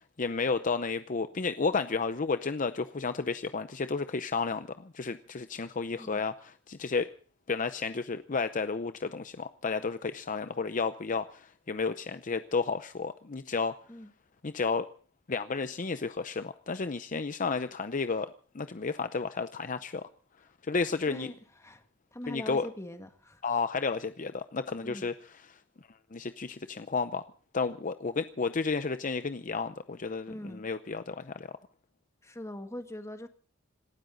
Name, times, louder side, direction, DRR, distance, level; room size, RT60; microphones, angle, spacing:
voice 1, 0.0-7.1 7.5-13.7 14.4-14.9 15.3-20.1 20.6-21.3 22.3-22.7 23.4-25.1 25.5-25.6 26.1-27.2 27.5-31.5, left 4 dB, 40° left, 11 dB, 0.7 m, -32 dB
voice 2, 22.1-23.4 24.8-25.1 30.3-30.7 32.2-33.3, left 1 dB, 15° left, 7 dB, 1.8 m, -42 dB
27.0 x 13.0 x 4.0 m, 0.43 s
head